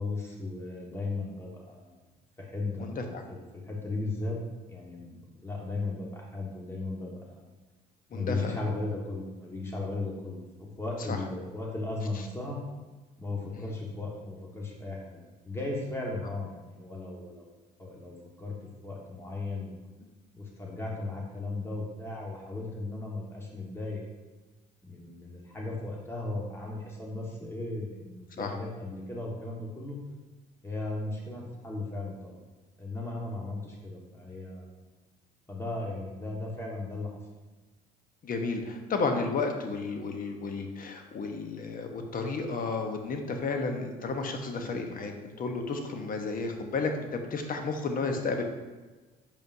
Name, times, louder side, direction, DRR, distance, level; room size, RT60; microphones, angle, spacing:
voice 1, 0.0-1.9 2.4-4.4 4.7-7.5 8.1-12.6 13.2-18.6 18.8-19.8 20.3-24.1 24.8-30.0 30.6-32.4 32.8-34.7 35.5-37.1, left 2 dB, 15° left, -2 dB, 1.5 m, -36 dB
voice 2, 2.8-3.2 8.1-8.5 11.1-11.2 28.4-28.5 38.2-45.1 45.4-48.4, left 4 dB, 45° left, 4 dB, 1.0 m, -32 dB
7.0 x 5.2 x 2.6 m, 1.2 s
supercardioid pair, 70°, 19 cm